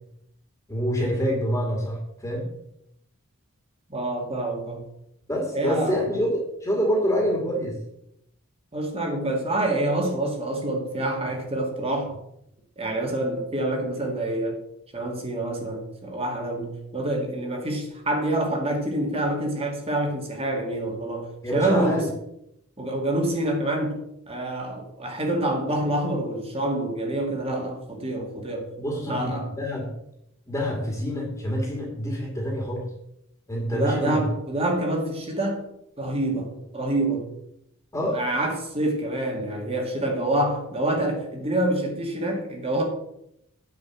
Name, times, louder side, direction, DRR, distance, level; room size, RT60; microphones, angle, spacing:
voice 1, 0.7-2.4 5.3-7.8 21.4-22.1 28.8-29.9 30.5-32.9 33.5-34.2 37.9-38.2, equal, 15° left, 2.2 m, -26 dB
voice 2, 3.9-4.8 5.5-6.2 8.7-12.2 12.8-14.6 14.9-22.0 22.8-24.0 24.3-28.7 29.1-29.5 33.7-35.6 36.0-37.3 38.1-42.8, right 1 dB, 25° right, 2.2 m, -27 dB
9.4 x 5.2 x 7.5 m
head